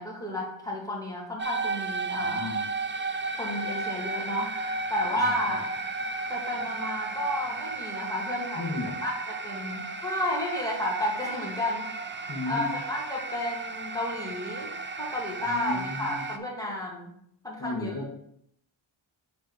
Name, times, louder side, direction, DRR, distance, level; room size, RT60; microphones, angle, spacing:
voice 1, 0.0-2.5 3.4-4.5 4.9-5.6 6.3-11.9 12.4-14.7 15.0-17.1 17.4-18.0, left 1 dB, 5° left, -3 dB, 2.1 m, -32 dB
sound 1, 1.4-16.4, right 3 dB, 25° right, 0.6 m, -34 dB
voice 2, 2.2-2.6 8.6-9.0 12.3-12.7 15.4-16.2 17.6-18.1, left 2 dB, 35° left, -4 dB, 1.4 m, -34 dB
7.3 x 4.1 x 4.8 m, 0.73 s
wide cardioid pair, 80°, 48 cm